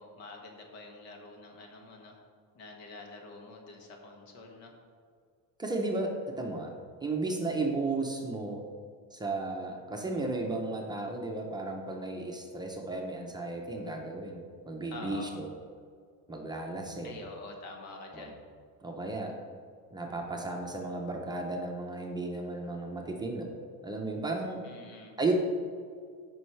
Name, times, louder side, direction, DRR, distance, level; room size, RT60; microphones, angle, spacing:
voice 1, 0.0-2.2 2.5-4.7 14.9-15.3 17.0-18.4 24.6-25.2, left 3 dB, 75° left, 1 dB, 1.8 m, -47 dB
voice 2, 5.6-6.7 7.0-8.6 9.1-15.5 16.3-17.2 18.1-18.3 18.8-19.3 19.9-23.5 23.8-24.6 25.2-25.3, right 3 dB, 10° right, 0 dB, 0.6 m, -34 dB
14.5 x 5.5 x 3.3 m, 2.1 s
cardioid pair, 170°, 36 cm